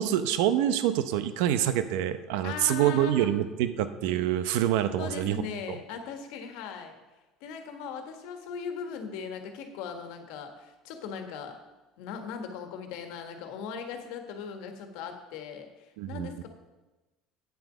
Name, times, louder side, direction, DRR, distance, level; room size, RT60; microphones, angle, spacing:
voice 1, 0.0-5.4 5.7-5.8 16.0-16.3, right 11 dB, 85° right, 11 dB, 0.7 m, -26 dB
voice 2, 2.4-3.3 5.0-6.9 7.4-11.6 12.0-16.5, left 6 dB, 75° left, 5 dB, 1.5 m, -39 dB
9.5 x 7.8 x 5.1 m, 1.1 s
cardioid pair, 140°, 0 cm